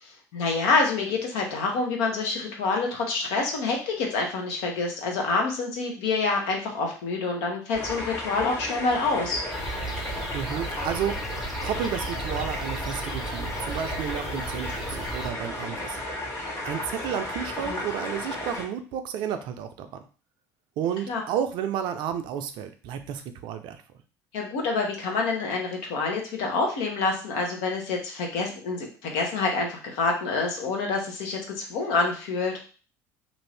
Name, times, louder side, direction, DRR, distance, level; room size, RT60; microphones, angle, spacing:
voice 1, 0.0-9.4 17.7-17.8 21.1-21.2 24.3-32.5, left 3 dB, 70° left, 1 dB, 1.0 m, -27 dB
sound 1, 7.7-18.6, left 1 dB, 30° left, 1.2 m, -34 dB
sound 2, 9.5-15.3, right 3 dB, 5° right, 0.6 m, -36 dB
voice 2, 10.3-11.2 11.6-16.0 16.6-20.0 20.8-23.8, right 9 dB, 60° right, 8 dB, 0.5 m, -31 dB
2.6 x 2.6 x 3.3 m, 0.37 s
hypercardioid pair, 70°, 9 cm